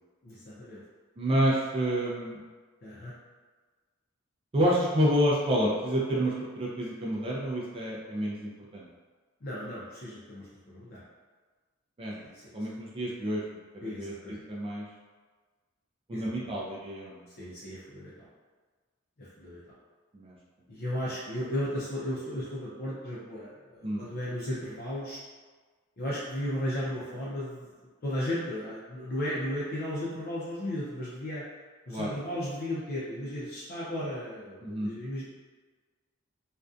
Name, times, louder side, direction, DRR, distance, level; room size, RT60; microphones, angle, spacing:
voice 1, 0.2-0.8 2.8-3.1 9.4-11.0 12.2-12.5 13.8-14.4 16.1-16.5 17.4-18.3 19.2-19.6 20.7-25.2 26.0-27.7 28.0-31.4 31.9-35.2, left 1 dB, 50° left, -8 dB, 0.5 m, -35 dB
voice 2, 1.2-2.4 4.5-8.9 12.0-12.3 12.5-13.4 13.7-14.1 14.5-14.9 16.1-17.2 20.1-20.4 23.8-24.1 31.9-32.1 34.6-34.9, equal, 25° right, -5 dB, 0.4 m, -29 dB
2.5 x 2.2 x 2.4 m, 1.4 s
head